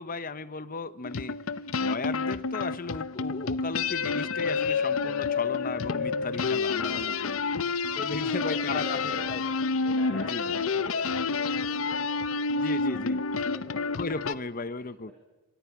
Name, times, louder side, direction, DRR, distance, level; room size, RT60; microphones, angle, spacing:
voice 1, 0.0-1.4 1.8-7.1 7.9-9.4 10.3-10.5 12.5-13.2 14.0-15.1, left 3 dB, 40° left, 15 dB, 0.9 m, -35 dB
sound 1, 1.0-14.3, left 4 dB, 70° left, 0.8 m, -29 dB
voice 2, 6.1-7.0 7.4-9.4 9.8-14.0 15.1-15.2, left 1 dB, 10° left, -4 dB, 7.0 m, -46 dB
27.0 x 25.5 x 6.0 m, 1.1 s
head